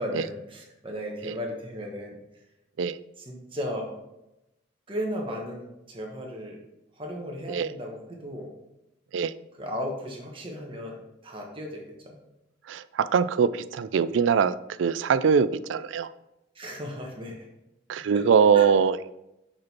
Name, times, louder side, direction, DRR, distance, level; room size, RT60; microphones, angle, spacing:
voice 1, 0.0-2.2 3.2-4.0 4.9-6.6 7.0-8.5 9.6-12.2 16.5-17.5 18.1-18.2 18.5-18.7, equal, 30° right, 0 dB, 1.2 m, -35 dB
voice 2, 12.7-14.5 14.8-16.1 17.9-19.1, right 6 dB, 85° right, 15 dB, 0.3 m, -22 dB
6.1 x 5.1 x 4.2 m, 0.90 s
head